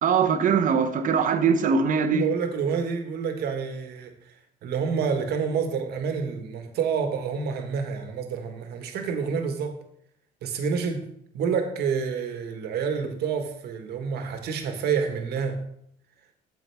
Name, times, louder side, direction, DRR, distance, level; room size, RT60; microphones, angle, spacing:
voice 1, 0.0-2.3, right 6 dB, 50° right, 0.9 m, -22 dB
voice 2, 2.1-9.8 10.4-11.1 11.3-15.6, right 6 dB, 70° right, 1.4 m, -28 dB
9.6 x 7.3 x 3.5 m
cardioid pair, 110°, 17 cm